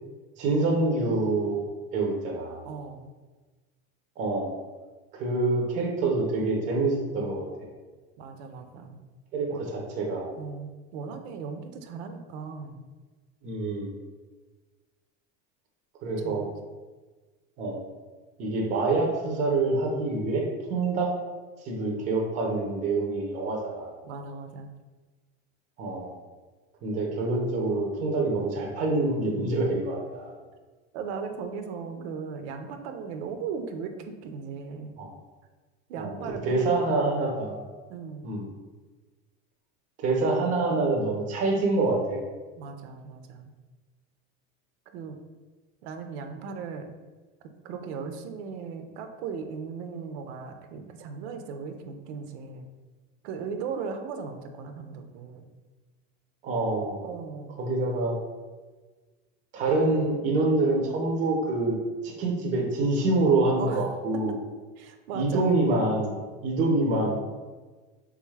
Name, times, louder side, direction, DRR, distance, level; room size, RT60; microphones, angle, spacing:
voice 1, 0.4-1.6 1.9-2.6 4.2-4.5 5.1-7.4 9.3-10.3 13.4-13.9 16.0-16.4 17.6-17.8 18.4-20.4 20.7-21.1 21.6-24.0 25.8-26.1 26.8-30.3 35.0-35.1 36.0-36.1 36.5-37.6 38.2-38.4 40.0-42.2 56.4-57.0 57.6-58.2 59.5-61.8 62.0-64.4 65.1-66.1 66.4-67.1, right 2 dB, 25° right, 0 dB, 0.4 m, -26 dB
voice 2, 2.6-3.1 8.2-9.0 9.5-9.6 10.4-12.8 16.2-16.5 24.0-24.7 30.9-34.9 35.9-36.6 37.9-38.3 42.6-43.5 44.9-45.2 45.8-46.9 47.6-52.7 53.2-55.5 57.0-57.6 63.6-63.8 64.8-65.5, right 5 dB, 80° right, 7 dB, 0.5 m, -37 dB
3.4 x 2.3 x 3.2 m, 1.3 s
cardioid pair, 170°, 33 cm